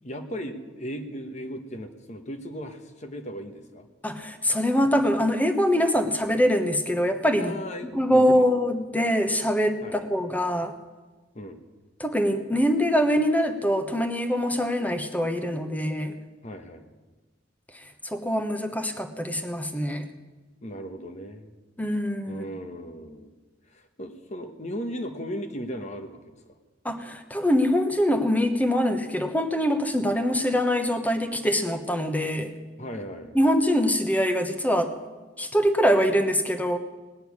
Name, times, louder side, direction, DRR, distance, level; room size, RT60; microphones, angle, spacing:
voice 1, 0.0-3.9 7.4-8.5 9.8-10.0 11.3-11.6 16.4-16.8 20.6-21.5 22.3-23.3 23.7-26.4 32.8-33.4, equal, 40° left, 6 dB, 1.2 m, -37 dB
voice 2, 4.0-7.5 7.9-10.7 12.0-16.1 18.0-20.1 21.8-22.4 26.8-32.5 33.3-35.0 35.4-36.8, equal, 10° left, 7 dB, 1.1 m, -24 dB
18.5 x 6.8 x 9.6 m, 1.2 s
head